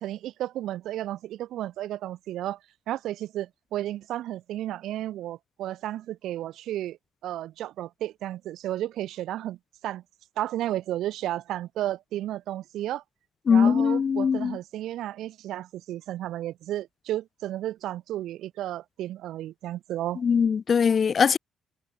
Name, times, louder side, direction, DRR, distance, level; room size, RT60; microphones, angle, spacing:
voice 1, 0.0-2.6 2.9-7.0 7.2-9.6 9.8-10.0 10.4-13.0 13.5-20.2, right 13 dB, 85° right, 1.7 m, -33 dB
voice 2, 13.5-14.6 20.2-21.4, left 6 dB, 45° left, 0.3 m, -21 dB
cardioid pair, 90°, 0 cm